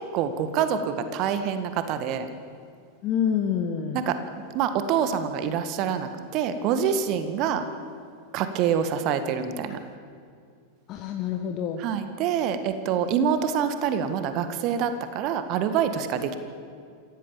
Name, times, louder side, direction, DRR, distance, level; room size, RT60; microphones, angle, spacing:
voice 1, 0.0-2.3 3.9-4.2 4.5-7.6 8.3-9.8 11.8-16.4, right 8 dB, 40° right, 9 dB, 1.7 m, -26 dB
voice 2, 3.0-4.1 9.7-9.8 10.9-11.8, left 8 dB, 35° left, 5 dB, 1.5 m, -27 dB
26.5 x 17.0 x 7.3 m, 2.3 s
figure-of-eight pair, 90°, 0 cm